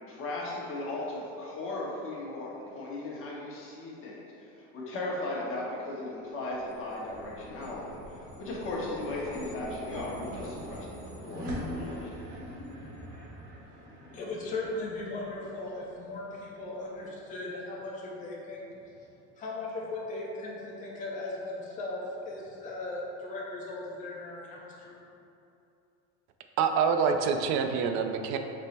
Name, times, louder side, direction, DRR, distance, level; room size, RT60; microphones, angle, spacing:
voice 1, 0.0-12.1, left 2 dB, 40° left, -5 dB, 1.1 m, -37 dB
sound 1, 6.4-17.0, equal, 75° right, 1.1 m, -43 dB
voice 2, 13.6-18.7 19.0-19.1 19.4-25.0, left 2 dB, 25° left, -5 dB, 0.6 m, -38 dB
voice 3, 26.6-28.4, right 6 dB, 55° right, 6 dB, 0.4 m, -26 dB
5.4 x 2.0 x 4.1 m, 2.7 s
supercardioid pair, 120°, 34 cm